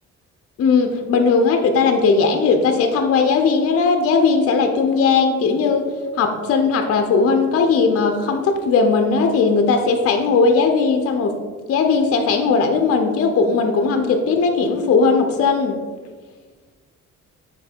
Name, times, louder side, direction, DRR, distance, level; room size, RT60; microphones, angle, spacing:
voice 1, 0.6-5.9 6.2-11.3 11.7-15.8, left 4 dB, 50° left, 5 dB, 0.5 m, -18 dB
4.4 x 2.7 x 4.4 m, 1.4 s
cardioid pair, 90°, 30 cm